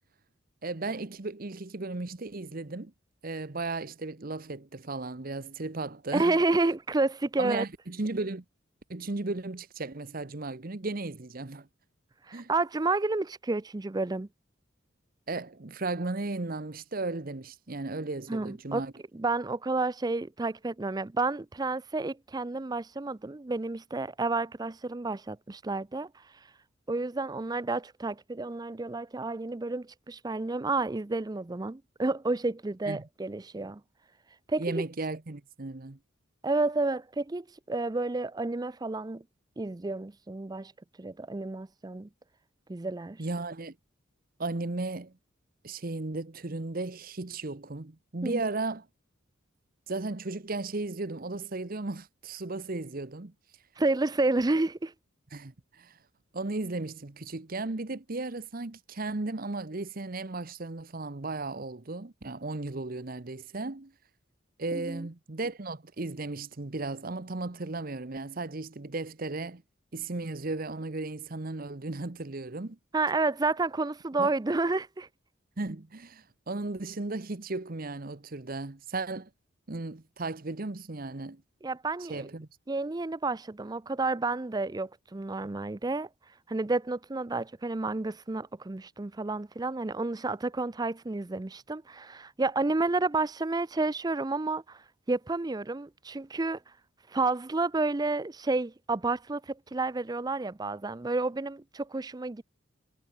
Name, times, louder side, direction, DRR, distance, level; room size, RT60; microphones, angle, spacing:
voice 1, 0.6-2.9 3.2-6.4 7.4-8.4 8.9-11.7 12.3-12.5 15.3-18.9 32.9-33.0 34.6-36.0 43.2-43.8 44.4-45.1 45.6-48.9 49.9-53.3 55.3-56.0 56.3-63.9 64.6-69.6 69.9-72.8 74.2-74.3 75.6-79.3 79.7-81.4 82.1-82.5, right 3 dB, 45° right, 1.0 m, -35 dB
voice 2, 6.1-7.7 12.3-14.3 18.3-18.8 19.1-26.1 26.9-33.8 34.5-34.8 36.4-39.2 39.6-40.7 41.0-42.1 42.7-43.2 48.2-48.4 53.8-54.9 64.7-65.1 72.9-75.1 81.6-82.3 82.7-86.1 86.5-94.8 95.1-96.6 97.1-102.4, right 3 dB, 20° right, 0.5 m, -30 dB
head